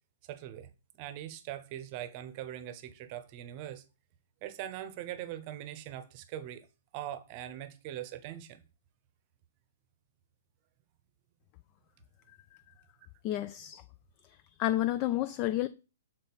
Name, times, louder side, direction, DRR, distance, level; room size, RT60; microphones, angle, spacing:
voice 1, 0.3-0.7 1.0-3.8 4.4-6.7 6.9-8.6, right 12 dB, 35° right, 0.8 m, -41 dB
voice 2, 13.2-13.8 14.3-15.7, left 14 dB, 30° left, 0.3 m, -31 dB
6.8 x 4.0 x 4.0 m
figure-of-eight pair, 115°, 0 cm